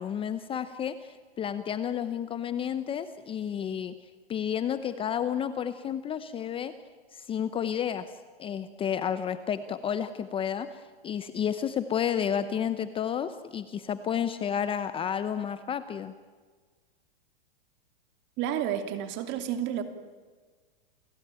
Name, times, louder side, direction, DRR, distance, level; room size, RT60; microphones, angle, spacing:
voice 1, 0.0-4.0 4.3-6.7 7.1-8.1 8.4-16.1, left 8 dB, 15° left, 12 dB, 0.8 m, -31 dB
voice 2, 18.4-19.8, right 10 dB, 35° right, 8 dB, 2.8 m, -30 dB
29.0 x 16.5 x 9.0 m, 1.5 s
hypercardioid pair, 135°, 31 cm